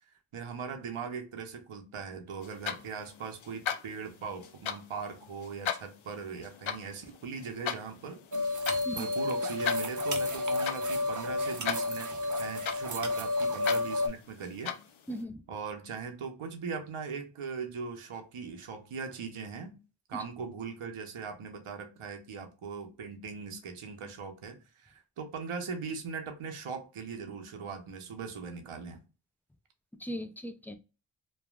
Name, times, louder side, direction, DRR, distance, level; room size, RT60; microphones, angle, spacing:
voice 1, 0.3-8.2 8.9-14.7 15.5-19.8 20.1-29.0, right 5 dB, 80° right, 0.8 m, -40 dB
sound 1, 2.4-15.2, left 8 dB, 70° left, 0.6 m, -39 dB
sound 2, 8.3-14.1, left 2 dB, 40° right, 0.6 m, -31 dB
voice 2, 15.1-15.4 20.1-20.2 30.0-30.8, equal, 5° left, 0.3 m, -38 dB
3.1 x 2.3 x 2.3 m
cardioid pair, 50°, 49 cm